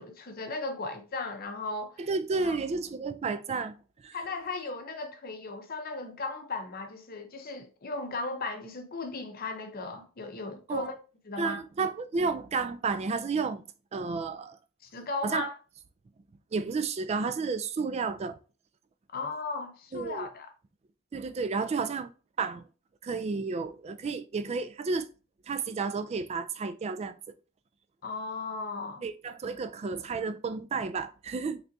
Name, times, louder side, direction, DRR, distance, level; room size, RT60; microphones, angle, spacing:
voice 1, 0.0-2.0 2.4-2.6 4.1-11.0 11.2-11.6 14.8-15.6 19.1-20.5 28.0-29.0, left 3 dB, 45° left, 0.7 m, -36 dB
voice 2, 2.0-3.7 4.0-4.2 10.7-10.9 11.4-13.6 13.9-14.6 15.2-15.5 16.5-18.3 19.9-20.3 21.1-22.1 22.4-22.7 23.0-25.1 25.5-27.3 29.0-31.6, right 4 dB, 30° right, 0.3 m, -31 dB
3.9 x 3.3 x 2.6 m
head